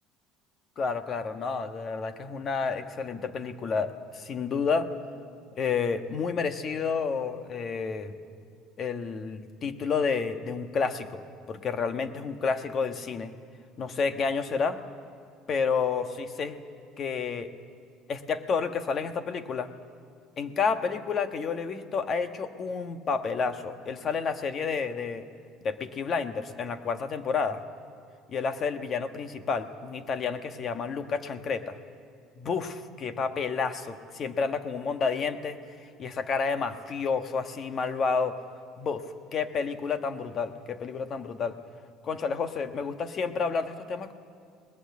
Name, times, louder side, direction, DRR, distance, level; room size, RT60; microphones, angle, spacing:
voice 1, 0.8-5.0 5.5-8.2 8.8-13.3 13.8-14.8 15.5-16.6 17.0-17.5 18.1-19.7 20.4-25.3 25.6-27.6 28.3-31.8 32.4-38.4 38.8-41.6 42.0-44.1, left 5 dB, 40° left, 9 dB, 1.4 m, -30 dB
20.0 x 20.0 x 8.4 m, 2.3 s
cardioid pair, 110°, 0 cm